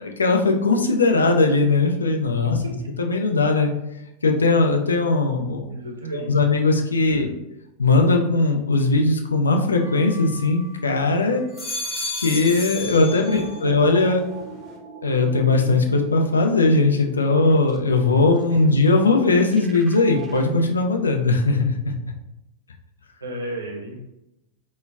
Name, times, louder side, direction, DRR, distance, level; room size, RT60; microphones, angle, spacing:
voice 1, 0.0-2.6 3.0-3.7 4.2-5.7 6.1-7.3 7.8-11.4 12.2-14.2 15.0-21.9, left 3 dB, 75° left, 3 dB, 0.4 m, -19 dB
voice 2, 5.7-6.4 7.1-7.4 13.3-13.4 18.5-18.6 23.2-24.0, right 1 dB, 75° right, 0 dB, 0.7 m, -33 dB
sound 1, 9.8-10.9 11.4-13.8 14.1-14.7, left 2 dB, 20° left, 0.9 m, -33 dB
sound 2, 13.1-20.4, right 5 dB, 25° right, 0.3 m, -41 dB
3.8 x 2.0 x 2.4 m, 0.90 s
figure-of-eight pair, 90°, 0 cm